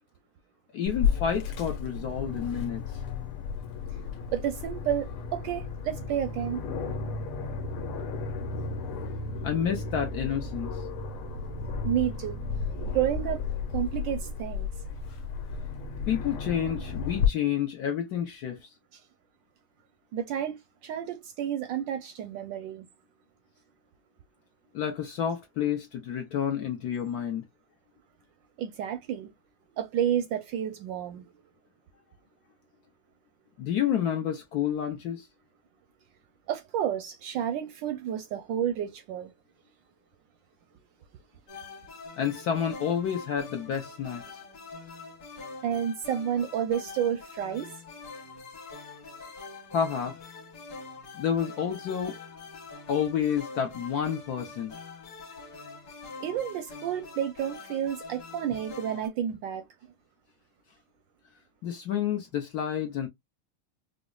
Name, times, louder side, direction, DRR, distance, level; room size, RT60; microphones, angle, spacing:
voice 1, 0.7-3.0 9.4-10.8 16.1-18.7 24.7-27.4 33.6-35.3 42.2-44.4 49.7-50.1 51.1-52.2 52.9-54.7 61.6-63.1, left 8 dB, 70° left, 0.9 m, -29 dB
Aircraft, 0.9-17.3, left 5 dB, 90° left, 1.7 m, -33 dB
voice 2, 4.3-6.6 11.8-12.4 12.9-13.4 13.7-14.7 18.9-19.0 20.1-22.8 28.6-29.3 29.8-31.3 36.5-39.3 45.6-47.7 56.2-59.7, right 10 dB, 75° right, 1.1 m, -30 dB
sound 1, 41.5-59.1, left 4 dB, 55° left, 1.7 m, -45 dB
5.0 x 2.0 x 2.3 m
omnidirectional pair, 2.3 m